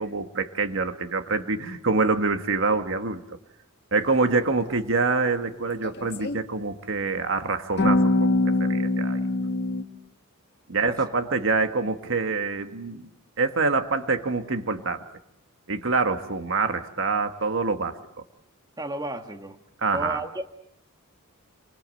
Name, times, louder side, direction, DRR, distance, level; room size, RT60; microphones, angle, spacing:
voice 1, 0.0-3.2 3.9-8.3 8.6-9.2 10.7-13.1 13.4-15.0 15.7-18.0 19.8-20.2, right 3 dB, 60° right, 7 dB, 1.7 m, -25 dB
sound 1, 5.8-6.4 7.8-9.8, left 2 dB, 50° left, 1.7 m, -23 dB
voice 2, 10.7-11.4 18.8-19.6 19.9-20.4, right 2 dB, 20° right, 6 dB, 1.6 m, -34 dB
28.0 x 25.0 x 7.8 m, 0.76 s
head